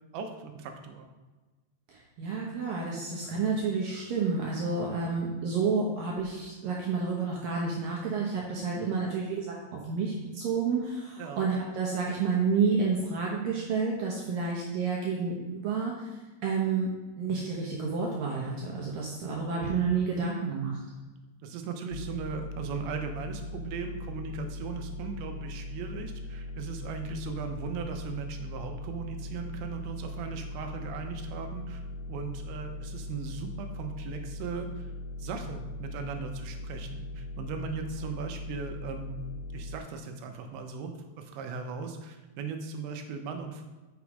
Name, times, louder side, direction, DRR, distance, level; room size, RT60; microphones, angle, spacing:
voice 1, 0.1-1.1 11.2-11.4 19.3-19.4 21.4-31.8 32.1-34.9 35.2-39.2 39.5-43.7, right 5 dB, 90° right, 5 dB, 3.0 m, -38 dB
voice 2, 1.9-16.9 17.2-20.8 37.8-38.1, right 4 dB, 70° right, -3 dB, 2.2 m, -30 dB
sound 1, 21.9-39.8, left 2 dB, 85° left, 2.8 m, -40 dB
8.3 x 6.1 x 4.7 m, 1.2 s
omnidirectional pair, 5.2 m